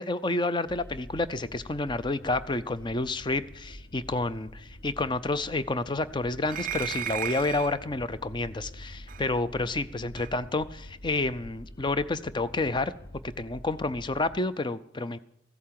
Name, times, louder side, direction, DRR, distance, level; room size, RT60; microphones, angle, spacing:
voice 1, 0.0-4.5 4.8-12.9 13.2-15.2, left 2 dB, 20° left, 14 dB, 0.5 m, -29 dB
sound 1, 0.7-14.4, equal, 45° left, 0.9 m, -47 dB
sound 2, 6.5-7.8 9.1-9.2 10.2-10.3, right 11 dB, 40° right, 0.4 m, -34 dB
15.0 x 8.4 x 7.6 m, 0.77 s
head